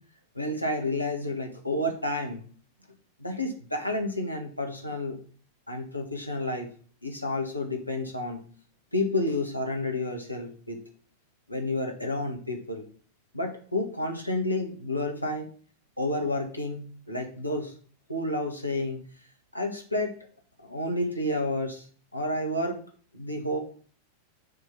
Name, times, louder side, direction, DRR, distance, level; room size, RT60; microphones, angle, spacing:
voice 1, 0.3-2.4 3.2-5.2 5.7-6.7 7.0-8.4 8.9-10.8 11.5-12.8 13.3-15.5 16.0-17.7 18.1-19.0 19.5-20.1 20.6-21.8 22.1-22.8 23.1-23.6, left 1 dB, 85° left, 2 dB, 1.6 m, -30 dB
7.5 x 3.6 x 6.2 m, 0.43 s
figure-of-eight pair, 90°, 0 cm